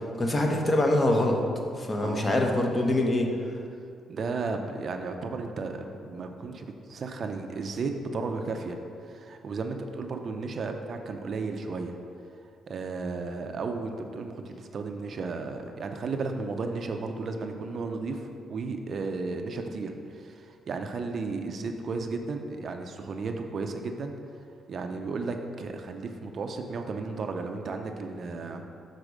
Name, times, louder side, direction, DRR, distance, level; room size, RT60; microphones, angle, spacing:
voice 1, 0.2-1.4 1.8-3.3, left 1 dB, 30° left, 1 dB, 0.9 m, -24 dB
voice 2, 4.1-8.8 9.0-12.0 12.7-24.1 24.7-28.7, right 4 dB, 50° right, 5 dB, 0.5 m, -34 dB
6.4 x 4.1 x 4.9 m, 2.4 s
cardioid pair, 90°, 0 cm